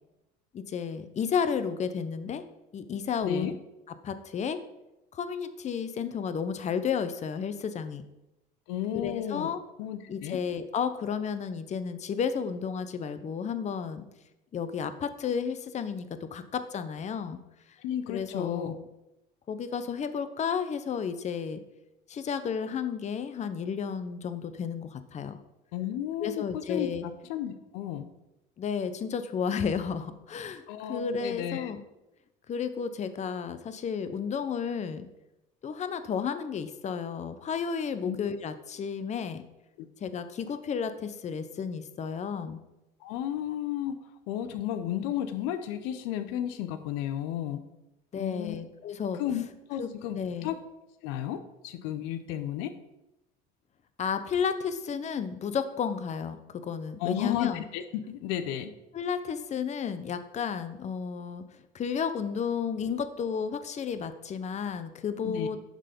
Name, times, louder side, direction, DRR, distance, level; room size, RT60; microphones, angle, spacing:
voice 1, 0.5-2.4 2.7-3.6 4.0-4.6 5.1-8.0 8.9-9.6 10.1-14.1 14.5-17.4 18.1-18.8 19.5-21.6 22.1-25.4 26.2-27.0 28.6-31.8 32.5-35.1 35.6-39.4 40.0-42.6 48.1-49.2 49.8-50.5 54.0-57.6 58.9-61.5 61.7-65.6, left 6 dB, 35° left, 11 dB, 0.7 m, -32 dB
voice 2, 3.2-3.5 8.7-9.5 9.8-10.4 17.8-18.7 25.7-28.1 30.7-31.7 38.0-38.2 39.8-39.9 43.0-44.0 44.3-47.6 48.1-48.6 49.1-49.4 49.7-50.6 51.0-52.7 57.0-58.7 65.2-65.6, left 11 dB, 80° left, 11 dB, 0.7 m, -33 dB
11.0 x 3.9 x 5.1 m, 0.93 s
supercardioid pair, 95°, 20 cm